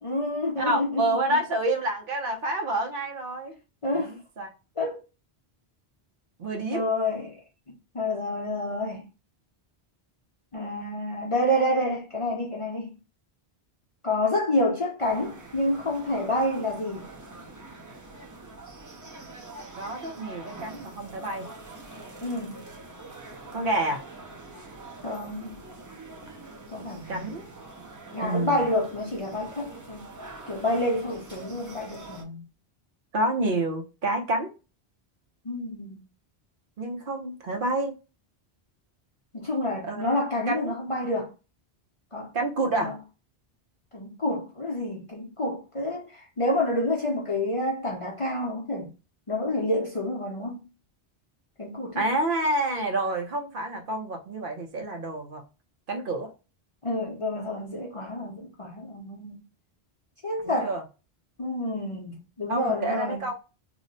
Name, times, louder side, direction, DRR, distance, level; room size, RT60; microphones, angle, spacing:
voice 1, 0.0-1.0 3.8-4.1 4.8-5.0 6.7-7.4 7.7-9.0 10.5-12.9 14.0-17.1 22.2-22.6 25.0-25.6 26.7-27.4 28.1-30.0 30.5-32.5 35.4-36.1 39.3-41.3 42.1-42.3 42.8-42.9 43.9-48.9 49.3-50.6 51.6-52.0 56.8-59.4 60.2-60.7 61.4-63.2, left 1 dB, 35° left, 0.7 m, -28 dB
voice 2, 0.6-3.6 4.0-4.5 6.4-6.9 19.8-21.5 23.5-24.0 27.1-27.5 28.2-28.6 33.1-34.5 36.8-37.9 39.8-40.1 40.5-40.7 42.3-42.9 52.0-55.4 55.9-56.3 60.4-60.8 62.5-63.3, right 2 dB, 60° right, 1.0 m, -28 dB
sound 1, 15.0-32.2, right 2 dB, 25° right, 0.5 m, -44 dB
3.0 x 2.1 x 3.8 m
omnidirectional pair, 1.1 m